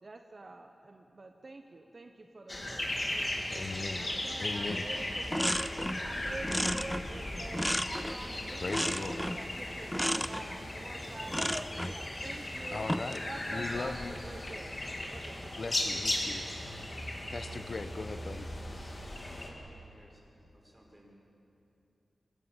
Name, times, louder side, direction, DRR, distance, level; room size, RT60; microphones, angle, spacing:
voice 1, 0.0-5.5 5.8-12.9 13.2-14.7 15.1-16.0 16.3-16.4, right 2 dB, 45° right, 5 dB, 1.1 m, -47 dB
sound 1, 2.5-19.5, left 1 dB, 35° left, 3.3 m, -37 dB
voice 2, 3.5-4.1 4.4-4.9 8.6-9.2 12.7-13.2 13.5-14.2 15.6-16.5 17.3-18.5, left 3 dB, 55° left, 9 dB, 0.9 m, -38 dB
sound 2, 4.7-4.9 5.1-6.1 6.4-8.3 8.7-9.5 9.9-10.4 11.3-12.0 12.7-13.2, equal, 5° left, 0.7 m, -33 dB
voice 3, 19.0-21.1, equal, 15° right, -2 dB, 6.1 m, -59 dB
24.5 x 19.5 x 7.3 m, 2.8 s
wide cardioid pair, 80°, 0 cm